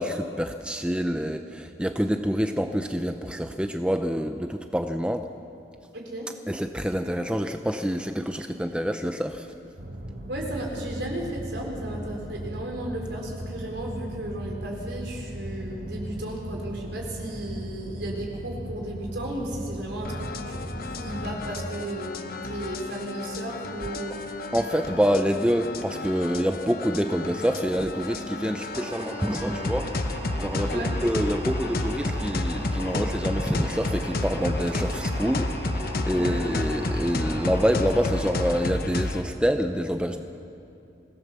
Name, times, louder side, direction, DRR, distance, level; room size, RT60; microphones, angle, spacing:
voice 1, 0.0-5.3 6.5-9.5 24.5-30.0 30.4-40.2, equal, 5° right, 6 dB, 0.6 m, -27 dB
voice 2, 5.9-6.3 10.3-22.1 22.4-24.2 28.4-28.5 30.6-30.9 36.1-36.4, right 1 dB, 70° right, 0 dB, 4.2 m, -34 dB
sound 1, 9.8-21.5, equal, 50° right, 1.9 m, -37 dB
sound 2, 20.0-39.2, left 2 dB, 50° left, 0.9 m, -31 dB
sound 3, 28.7-38.6, right 1 dB, 30° right, 1.8 m, -40 dB
24.5 x 17.0 x 6.9 m, 2.7 s
head